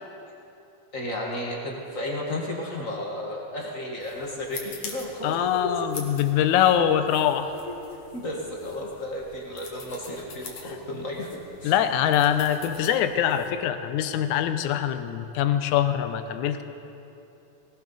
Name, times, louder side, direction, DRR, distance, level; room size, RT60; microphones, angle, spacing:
voice 1, 0.9-5.9 7.6-7.8 8.1-11.7, left 1 dB, 35° left, -2 dB, 1.4 m, -33 dB
sound 1, 4.0-13.5, left 5 dB, 60° left, 2.4 m, -45 dB
voice 2, 5.2-7.5 11.6-16.6, left 10 dB, 85° left, 9 dB, 2.2 m, -23 dB
18.5 x 18.0 x 4.0 m, 2.9 s
omnidirectional pair, 3.3 m